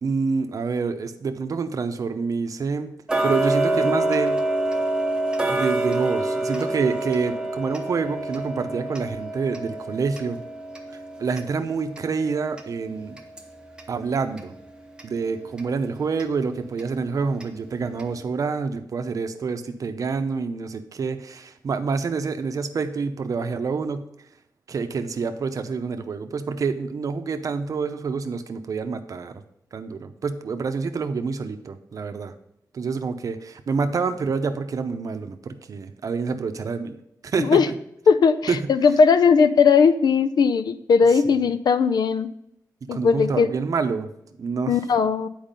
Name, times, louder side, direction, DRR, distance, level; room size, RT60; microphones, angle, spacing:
voice 1, 0.0-2.9 3.2-4.4 5.5-10.4 11.2-13.2 13.9-14.5 15.0-24.1 24.7-29.3 29.7-32.3 32.7-37.0 37.2-37.7 38.5-38.6 41.2-41.5 42.9-44.1 44.4-44.8, right 5 dB, 55° right, 8 dB, 0.6 m, -27 dB
Tick-tock, 3.1-13.9 14.3-14.4 15.0-15.1 15.6-15.7 16.2-16.3 16.8-16.9 17.4-17.5 18.0-18.1, right 2 dB, 15° right, 0.8 m, -27 dB
voice 2, 38.1-42.3 42.9-43.5 44.7-45.3, left 5 dB, 90° left, 11 dB, 0.5 m, -18 dB
9.0 x 4.8 x 5.2 m, 0.78 s
wide cardioid pair, 170°, 7 cm